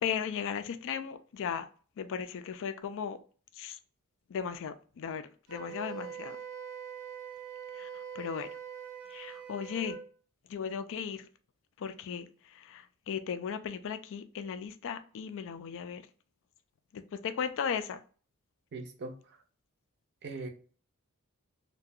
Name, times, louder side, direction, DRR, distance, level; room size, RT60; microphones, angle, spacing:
voice 1, 0.0-1.7 2.0-3.2 3.6-3.8 4.3-5.2 5.5-6.4 7.7-7.9 8.2-8.5 9.1-10.0 10.5-11.2 11.8-12.3 12.5-16.0 16.9-18.0, left 7 dB, 60° left, 0.3 m, -36 dB
Wind instrument woodwind instrument, 5.5-10.0, right 8 dB, 85° right, 0.9 m, -43 dB
voice 2, 18.7-19.2 20.2-20.5, right 3 dB, 50° right, 0.5 m, -39 dB
2.3 x 2.2 x 2.6 m
head